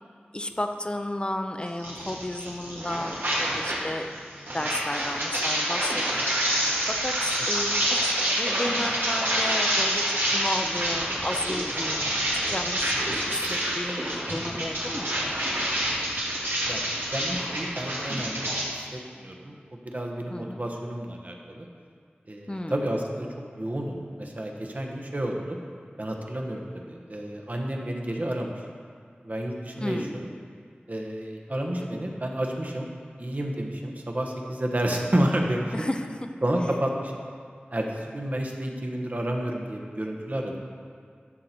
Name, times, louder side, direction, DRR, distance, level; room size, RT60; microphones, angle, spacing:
voice 1, 0.3-4.1 4.5-6.0 6.5-12.1 12.5-15.1 20.3-20.6 22.5-22.8 29.8-30.2 35.7-36.2, left 1 dB, 25° left, 6 dB, 0.6 m, -33 dB
sound 1, 1.8-3.8 4.1-18.6, right 1 dB, 85° right, 2.2 m, -27 dB
voice 2, 17.1-21.7 22.3-23.3 23.5-25.6 26.0-28.5 29.2-30.2 30.9-32.9 33.2-35.9 36.4-37.1 37.7-40.6, right 1 dB, 45° right, 1 dB, 1.3 m, -30 dB
12.5 x 6.8 x 4.4 m, 2.1 s
wide cardioid pair, 55°, 4 cm